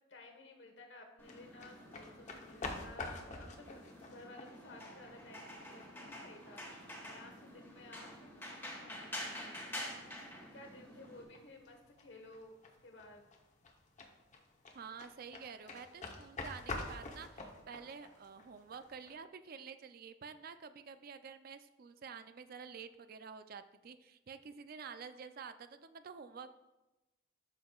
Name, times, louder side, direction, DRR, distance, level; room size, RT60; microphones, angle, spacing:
voice 1, 0.1-12.5 12.8-13.3, left 2 dB, 65° left, 4 dB, 1.2 m, -56 dB
sound 1, 1.2-19.1, left 3 dB, 40° left, 0.9 m, -49 dB
sound 2, 1.2-11.2, left 1 dB, 10° left, 1.4 m, -48 dB
voice 2, 14.7-26.5, right 6 dB, 50° right, 11 dB, 0.4 m, -49 dB
12.5 x 5.5 x 2.4 m, 1.0 s
head